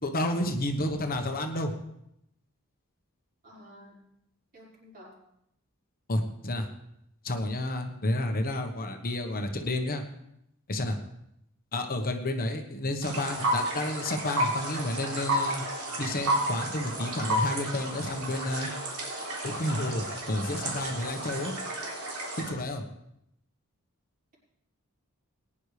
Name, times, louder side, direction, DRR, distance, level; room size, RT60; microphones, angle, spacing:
voice 1, 0.0-1.7 6.1-6.7 7.2-10.0 10.7-11.0 11.7-15.6 16.0-18.7 19.4-21.6 22.5-22.8, left 1 dB, 40° left, 5 dB, 1.2 m, -30 dB
voice 2, 3.4-4.0 4.5-5.1, equal, 45° right, -5 dB, 4.9 m, -51 dB
sound 1, 13.0-22.5, right 1 dB, 80° right, 3.4 m, -32 dB
20.0 x 9.9 x 3.3 m, 0.79 s
head